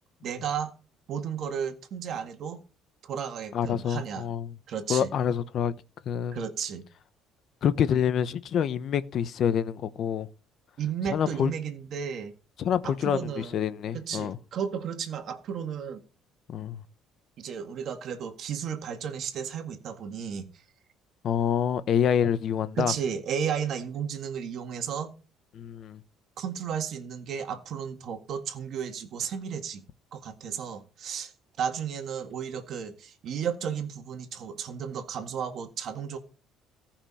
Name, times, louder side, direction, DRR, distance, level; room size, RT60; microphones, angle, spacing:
voice 1, 0.2-0.7 1.1-2.6 3.0-4.3 4.7-5.1 6.3-6.9 10.8-12.3 12.8-13.6 13.9-16.0 17.4-20.5 22.8-25.1 26.4-29.8 30.1-31.3 31.6-36.2, right 7 dB, 50° right, 1.8 m, -33 dB
voice 2, 3.5-4.5 4.9-5.7 6.1-6.4 7.6-10.3 11.1-11.5 12.6-14.4 16.5-16.8 21.2-22.9 25.5-26.0, left 8 dB, 45° left, 0.8 m, -27 dB
17.5 x 5.9 x 4.2 m
cardioid pair, 150°, 0 cm